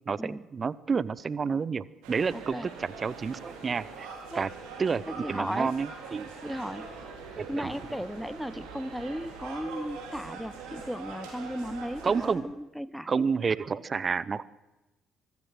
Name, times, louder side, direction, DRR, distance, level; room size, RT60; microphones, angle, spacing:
voice 1, 0.1-4.1 4.3-4.5 4.8-6.3 7.4-7.7 12.0-12.4 13.1-14.4, right 5 dB, 35° right, 20 dB, 0.8 m, -29 dB
sound 1, 2.0-12.3, right 4 dB, 65° right, 5.4 m, -43 dB
voice 2, 2.3-2.7 4.3-4.4 5.1-5.7 6.4-6.9 7.5-13.1, equal, ahead, 19 dB, 0.7 m, -36 dB
24.5 x 14.5 x 7.9 m, 1.0 s
figure-of-eight pair, 50°, 0 cm